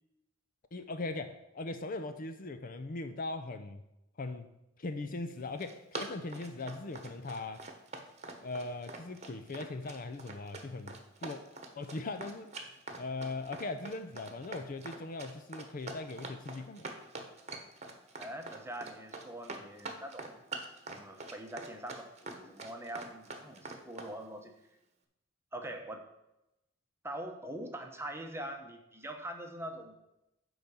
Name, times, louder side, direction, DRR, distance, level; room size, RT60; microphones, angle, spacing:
voice 1, 0.7-3.8 4.2-4.5 4.8-7.7 8.4-11.4 11.7-12.5 13.0-16.9, left 2 dB, 45° left, 9 dB, 0.6 m, -40 dB
Run, 5.4-24.1, right 3 dB, 35° right, 1.1 m, -44 dB
voice 2, 18.2-20.3 20.9-24.5 25.5-26.0 27.0-29.9, right 1 dB, 15° right, 4 dB, 0.9 m, -43 dB
10.0 x 4.0 x 6.9 m, 0.90 s
head